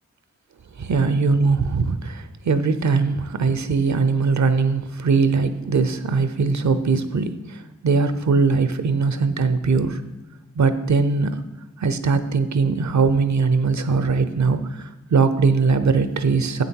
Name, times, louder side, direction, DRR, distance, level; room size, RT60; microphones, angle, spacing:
voice 1, 0.8-10.0 10.5-11.4 11.8-16.6, right 4 dB, 70° right, 11 dB, 0.7 m, -20 dB
8.2 x 6.8 x 4.6 m, 1.0 s
cardioid pair, 45°, 30 cm